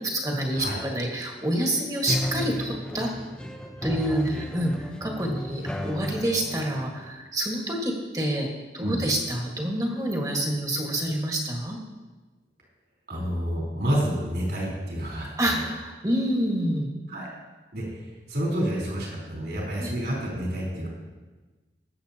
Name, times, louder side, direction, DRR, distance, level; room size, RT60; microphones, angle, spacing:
voice 1, 0.0-3.1 3.8-8.5 8.7-11.8 15.4-16.9 19.8-19.9, right 1 dB, 20° right, 0 dB, 1.5 m, -27 dB
sound 1, 2.1-7.1, equal, 5° left, 0.7 m, -33 dB
voice 2, 13.1-15.6 17.1-17.3 17.7-18.0 18.3-20.9, equal, 65° right, -4 dB, 3.7 m, -29 dB
20.5 x 7.6 x 2.8 m, 1.3 s
head